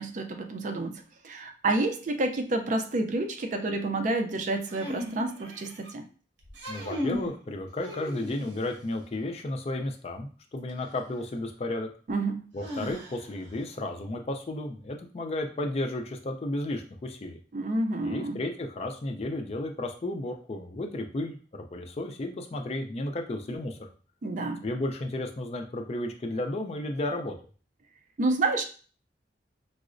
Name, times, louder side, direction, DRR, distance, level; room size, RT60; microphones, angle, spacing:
voice 1, 0.0-6.0 12.1-12.5 17.5-18.4 24.2-24.6 28.2-28.6, right 2 dB, 45° right, 5 dB, 0.4 m, -29 dB
sound 1, 4.7-5.9 6.5-7.4 7.8-8.7 10.7-10.8 12.6-13.5, equal, 75° right, 0.9 m, -36 dB
voice 2, 6.7-11.9 12.5-17.4 18.0-23.9 24.6-27.3, left 1 dB, 35° left, 3 dB, 0.4 m, -33 dB
4.6 x 2.0 x 2.4 m, 0.39 s
head